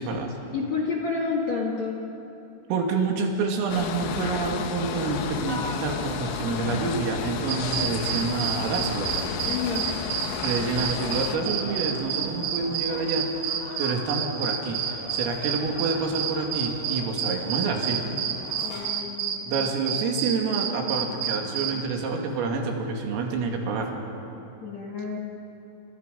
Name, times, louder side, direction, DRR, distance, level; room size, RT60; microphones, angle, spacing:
voice 1, 0.0-0.3 2.7-9.1 10.4-18.1 19.5-23.9, right 4 dB, 85° right, 1 dB, 5.1 m, -28 dB
voice 2, 0.5-2.0 9.4-9.9 18.6-19.7 24.6-25.2, left 4 dB, 55° left, -1 dB, 1.9 m, -30 dB
sound 1, 3.7-11.4, left 7 dB, 70° left, 3.2 m, -32 dB
sound 2, 5.4-18.9, left 2 dB, 25° left, 2.1 m, -42 dB
sound 3, 7.5-21.8, right 8 dB, 60° right, 2.3 m, -29 dB
30.0 x 27.5 x 5.4 m, 2.8 s
omnidirectional pair, 5.8 m